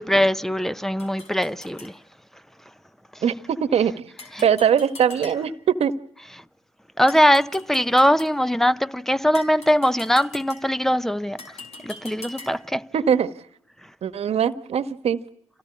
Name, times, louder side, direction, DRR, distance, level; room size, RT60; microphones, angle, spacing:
voice 1, 0.0-2.0 3.1-3.2 4.3-4.5 7.0-11.4 11.8-12.9, equal, 5° left, 1.0 m, -21 dB
sound 1, 1.0-1.9 4.2-5.7 7.1-8.4 9.3-10.9 11.4-12.8, left 3 dB, 65° left, 4.3 m, -43 dB
voice 2, 3.2-4.0 4.4-5.9 12.9-13.3 14.0-15.2, right 8 dB, 65° right, 1.4 m, -21 dB
27.0 x 17.5 x 9.9 m
hypercardioid pair, 45°, 11 cm